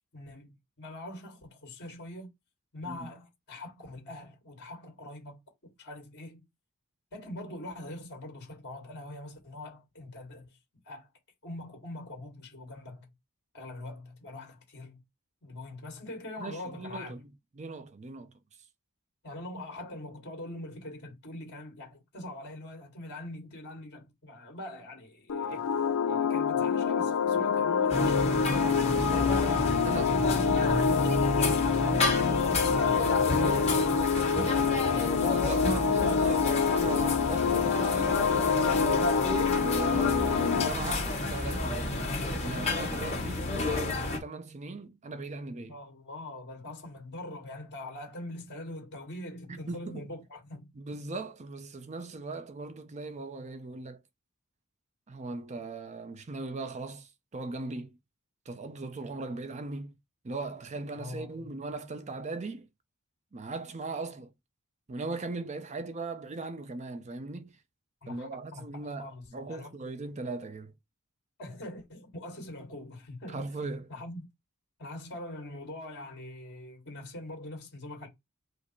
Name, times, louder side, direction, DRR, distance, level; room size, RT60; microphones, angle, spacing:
voice 1, 0.1-0.5 0.8-2.3 2.7-6.5 7.1-10.6 10.9-11.1 11.4-13.1 13.5-15.0 15.4-17.1 19.2-25.6 26.1-30.5 30.7-32.6 45.7-50.7 61.0-61.5 68.0-69.7 71.4-73.5 73.9-74.3 74.8-78.1, left 1 dB, 50° left, 1.9 m, -43 dB
voice 2, 16.4-17.2 17.6-18.3 29.8-30.1 32.7-34.5 34.9-39.0 39.6-42.0 42.4-45.8 49.5-50.0 50.8-54.0 55.1-57.9 58.5-59.9 60.2-62.7 63.3-64.3 64.9-67.5 68.1-70.7 73.3-73.9, right 3 dB, 30° right, 0.5 m, -39 dB
sound 1, 25.3-40.7, left 6 dB, 75° left, 0.4 m, -27 dB
sound 2, 27.9-44.2, left 2 dB, 30° left, 1.5 m, -30 dB
5.0 x 2.0 x 4.3 m
head